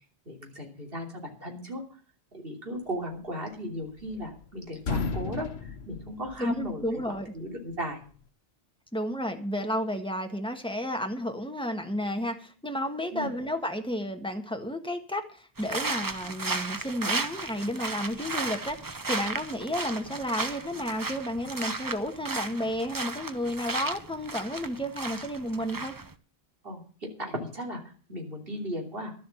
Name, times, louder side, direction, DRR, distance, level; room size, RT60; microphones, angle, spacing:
voice 1, 0.2-1.8 2.3-7.0 7.3-8.0 13.1-13.3 26.6-29.1, equal, 65° right, 1 dB, 3.3 m, -36 dB
sound 1, 3.6-4.5 4.8-6.9, left 4 dB, 80° left, 1.2 m, -34 dB
voice 2, 6.4-7.3 8.9-26.0, equal, 5° left, 4 dB, 1.5 m, -32 dB
sound 2, 15.6-26.1, right 3 dB, 25° right, 0.6 m, -34 dB
12.0 x 7.6 x 7.1 m, 0.42 s
omnidirectional pair, 1.1 m